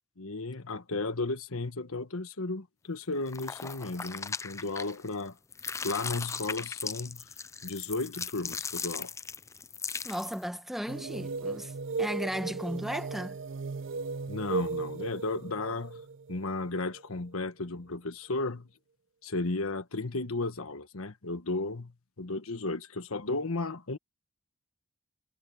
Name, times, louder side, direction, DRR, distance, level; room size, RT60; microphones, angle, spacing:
voice 1, 0.2-5.4 5.8-7.3 7.6-9.1 14.3-16.0 16.3-18.7 19.2-24.0, left 3 dB, 85° left, 1.4 m, -34 dB
sound 1, 3.3-5.2 5.5-10.4, left 5 dB, 15° left, 0.4 m, -38 dB
voice 2, 10.0-11.7 12.0-13.4, equal, ahead, 1.1 m, -35 dB
sound 2, 10.9-17.3, right 4 dB, 65° right, 0.6 m, -36 dB
head